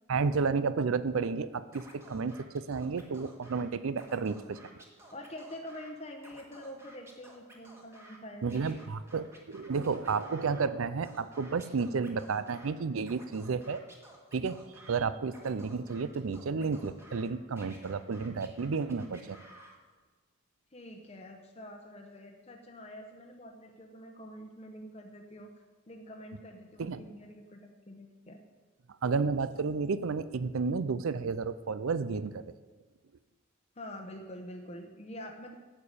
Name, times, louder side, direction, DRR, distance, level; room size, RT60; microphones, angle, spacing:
voice 1, 0.1-4.6 8.4-13.8 14.3-14.6 14.9-19.4 26.8-27.0 29.0-32.4, right 5 dB, 80° right, 15 dB, 0.5 m, -31 dB
Scratching (performance technique), 1.7-3.6 3.9-5.9 6.2-8.2 8.5-10.6 11.0-12.7 13.0-15.0 15.3-17.2 17.6-19.7, right 1 dB, 15° right, 1.5 m, -54 dB
voice 2, 5.1-8.5 20.7-25.5 25.9-28.4 33.8-35.5, left 1 dB, 30° left, 2 dB, 0.9 m, -46 dB
9.0 x 6.8 x 8.5 m, 1.4 s
head